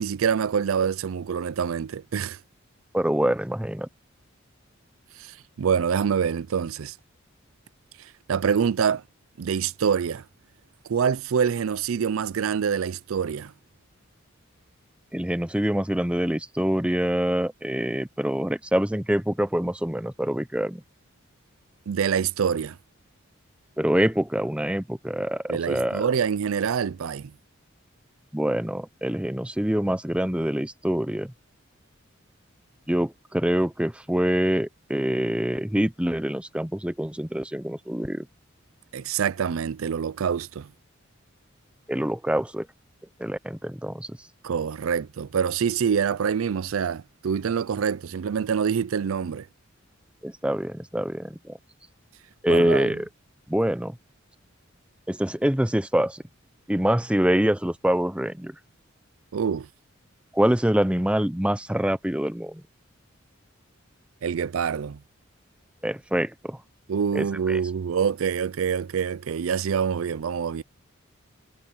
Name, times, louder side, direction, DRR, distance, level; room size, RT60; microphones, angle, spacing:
voice 1, 0.0-2.4 5.2-6.9 8.0-9.0 9.4-10.2 10.8-13.5 21.9-22.8 25.5-27.3 38.9-40.7 44.4-49.5 52.5-53.0 59.3-59.7 64.2-65.0 66.9-70.6, right 7 dB, 85° right, 0.4 m, -26 dB
voice 2, 2.9-3.9 15.1-20.8 23.8-26.0 28.3-31.3 32.9-38.3 41.9-42.7 43.2-44.2 50.2-51.6 52.4-53.1 53.5-54.0 55.1-56.2 56.7-58.5 60.3-62.6 65.8-66.6 67.1-67.6, equal, 5° right, 0.7 m, -25 dB
head